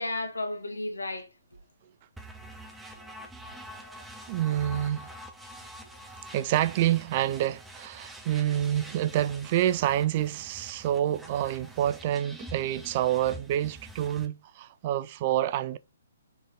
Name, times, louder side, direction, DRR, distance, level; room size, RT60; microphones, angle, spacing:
voice 1, 0.0-1.6 2.9-3.1 3.8-4.0 5.6-5.7, left 2 dB, 85° left, 1.1 m, -35 dB
sound 1, 2.2-14.3, equal, 5° right, 0.7 m, -46 dB
voice 2, 4.3-5.1 6.3-15.8, right 12 dB, 40° right, 0.3 m, -27 dB
4.1 x 3.2 x 3.9 m
figure-of-eight pair, 130°, 0 cm